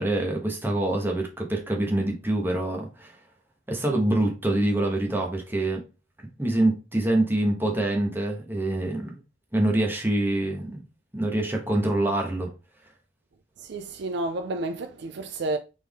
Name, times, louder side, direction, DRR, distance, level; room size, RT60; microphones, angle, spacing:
voice 1, 0.0-3.1 3.7-5.8 6.4-9.2 9.5-10.8 11.1-12.5, right 1 dB, 10° right, 1.1 m, -25 dB
voice 2, 13.7-15.6, right 2 dB, 60° right, 0.4 m, -30 dB
4.3 x 3.6 x 3.5 m
head